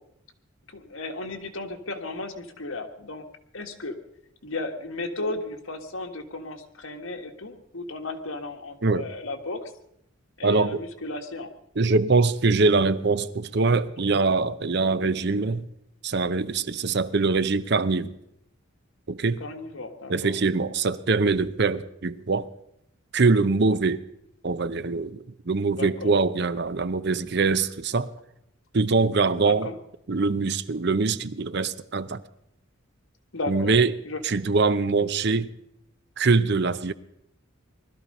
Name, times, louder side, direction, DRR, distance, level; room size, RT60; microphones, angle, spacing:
voice 1, 0.7-3.2 3.5-4.0 4.4-9.7 10.4-11.5 14.8-15.0 19.4-20.4 25.7-26.2 29.4-29.8 33.3-33.7 34.1-34.2, left 2 dB, 75° left, 1.8 m, -34 dB
voice 2, 10.4-10.8 11.8-15.7 16.0-18.1 19.1-19.4 20.1-22.5 23.1-24.0 24.4-28.1 28.7-29.7 30.1-32.2 33.5-33.9 34.2-35.5 36.2-36.9, right 4 dB, 55° right, 0.7 m, -23 dB
20.5 x 13.0 x 5.4 m
head